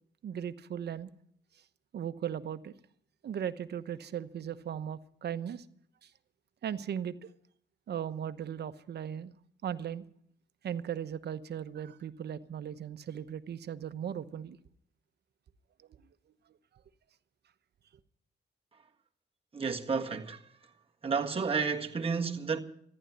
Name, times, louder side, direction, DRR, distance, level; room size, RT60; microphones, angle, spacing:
voice 1, 0.2-1.1 1.9-2.7 3.2-5.6 6.0-6.1 6.6-7.3 7.9-9.3 9.6-10.0 10.6-14.6, right 9 dB, 70° right, 1.0 m, -37 dB
voice 2, 19.5-20.4 21.0-22.6, right 5 dB, 30° right, 1.7 m, -31 dB
14.5 x 11.0 x 9.1 m
cardioid pair, 75°, 18 cm